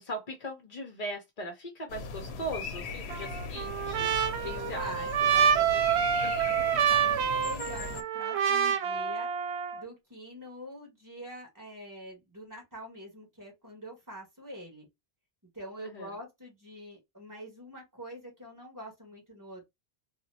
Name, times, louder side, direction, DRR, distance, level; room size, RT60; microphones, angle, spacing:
voice 1, 0.0-4.1 4.7-5.1 6.2-6.5 15.8-16.1, equal, 45° left, 0.6 m, -39 dB
sound 1, 1.9-8.0, left 4 dB, 85° left, 0.9 m, -39 dB
Trumpet, 3.1-9.8, right 7 dB, 85° right, 0.8 m, -27 dB
voice 2, 4.4-5.9 6.2-6.5 6.9-9.3 9.7-14.9 15.5-19.7, equal, 20° right, 1.5 m, -45 dB
4.0 x 2.2 x 2.7 m
omnidirectional pair, 1.1 m